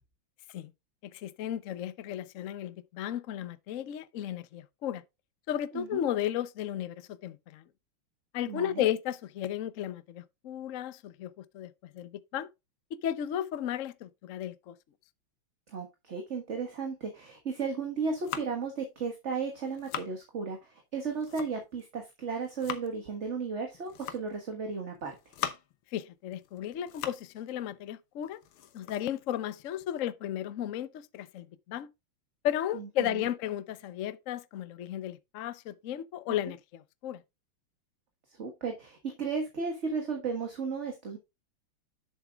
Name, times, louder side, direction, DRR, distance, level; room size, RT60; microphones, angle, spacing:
voice 1, 1.0-5.0 5.5-7.6 8.3-12.5 13.0-14.7 25.9-28.4 28.7-31.9 32.4-37.2, left 11 dB, 70° left, 0.7 m, -34 dB
voice 2, 8.5-8.8 15.7-25.1 32.7-33.2 38.4-41.2, right 5 dB, 35° right, 1.6 m, -34 dB
sound 1, 17.9-18.7 19.4-20.2 20.9-21.8 22.2-22.9 23.7-24.4 25.0-25.8 26.3-27.4 27.7-27.8 28.2-30.0, left 9 dB, 85° left, 1.9 m, -41 dB
10.0 x 7.4 x 2.3 m
omnidirectional pair, 2.3 m